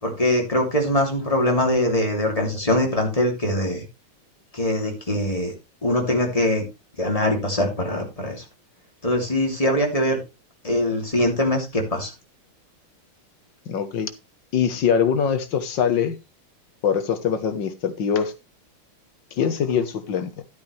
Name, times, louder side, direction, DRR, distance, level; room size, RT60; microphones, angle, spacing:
voice 1, 0.0-3.8 4.5-5.5 5.8-6.6 7.0-8.4 9.0-10.2 10.6-12.1, left 1 dB, 15° left, 2.9 m, -22 dB
voice 2, 13.7-14.1 14.5-16.2 16.8-18.3 19.4-20.4, left 7 dB, 65° left, 1.8 m, -23 dB
12.0 x 9.4 x 3.3 m
omnidirectional pair, 2.3 m